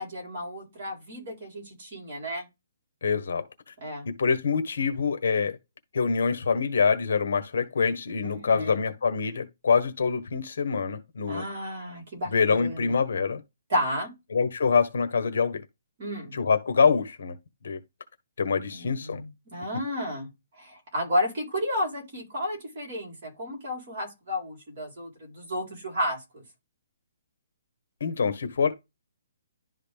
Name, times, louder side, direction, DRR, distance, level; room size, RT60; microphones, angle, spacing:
voice 1, 0.0-2.4 3.8-4.1 8.2-8.8 11.3-13.0 13.7-14.1 16.0-16.3 18.7-20.3 20.6-26.4, left 1 dB, 35° right, 4.0 m, -32 dB
voice 2, 3.0-3.4 4.0-5.6 5.9-11.4 12.3-13.4 14.3-15.6 16.3-17.3 17.6-17.8 18.4-19.2 28.0-28.7, left 5 dB, 55° left, 1.2 m, -25 dB
11.5 x 3.9 x 3.5 m
hypercardioid pair, 180°, 0 cm